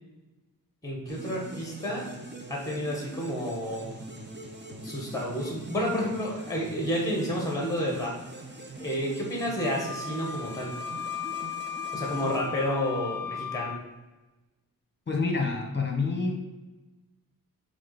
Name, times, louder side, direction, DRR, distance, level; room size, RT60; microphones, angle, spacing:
voice 1, 0.8-2.1 2.5-3.9 4.8-8.1 8.8-10.7 11.9-13.8, equal, 10° left, -1 dB, 1.5 m, -30 dB
sound 1, 1.1-13.2, right 2 dB, 30° right, 0.9 m, -43 dB
Wind instrument woodwind instrument, 9.6-13.8, left 7 dB, 70° left, 0.5 m, -36 dB
voice 2, 15.1-16.4, left 4 dB, 30° left, 2 dB, 1.2 m, -27 dB
6.3 x 3.8 x 4.2 m, 1.1 s
wide cardioid pair, 110°, 36 cm